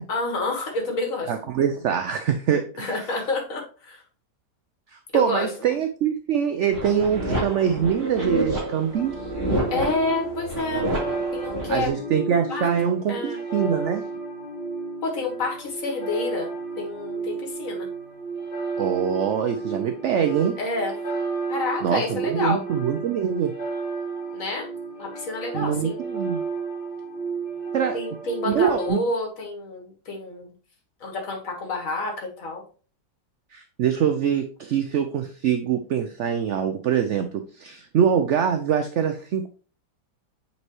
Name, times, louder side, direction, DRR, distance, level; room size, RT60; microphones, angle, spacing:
voice 1, 0.1-1.3 2.8-4.0 5.1-5.5 9.7-10.9 11.3-11.9 12.5-12.7 13.1-13.4 15.0-17.9 20.6-21.0 21.5-22.6 24.3-24.7 25.0-26.0 27.9-30.5 31.0-32.6, left 2 dB, 50° left, 1 dB, 2.0 m, -29 dB
voice 2, 1.3-3.0 4.9-9.1 11.7-14.1 18.8-20.6 21.8-23.5 25.5-26.4 27.7-28.0 28.5-29.0 33.5-39.5, right 8 dB, 65° right, 7 dB, 0.7 m, -24 dB
sound 1, 6.7-11.9, right 1 dB, 30° right, 3.8 m, -28 dB
sound 2, 8.9-28.9, right 4 dB, 25° left, 2.0 m, -32 dB
8.2 x 4.2 x 3.1 m, 0.37 s
omnidirectional pair, 1.8 m